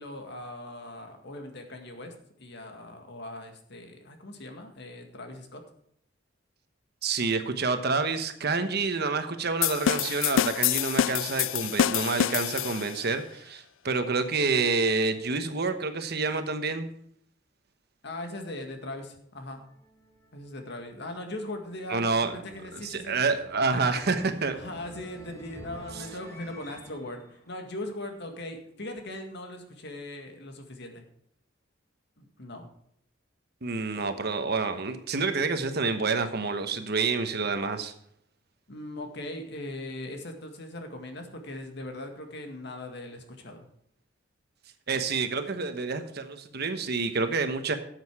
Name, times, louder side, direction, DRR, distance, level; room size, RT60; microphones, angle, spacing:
voice 1, 0.0-5.6 18.0-19.6 20.3-23.2 24.5-31.0 32.2-32.7 38.7-43.7, left 1 dB, 60° left, 4 dB, 1.9 m, -40 dB
voice 2, 7.0-16.9 21.9-22.3 22.8-24.6 33.6-37.9 44.9-47.8, right 4 dB, 55° right, 8 dB, 1.1 m, -28 dB
sound 1, 9.6-13.0, left 10 dB, 75° left, 0.4 m, -26 dB
sound 2, 19.4-28.5, equal, 15° left, 3.4 m, -50 dB
12.5 x 8.0 x 4.8 m, 0.70 s
head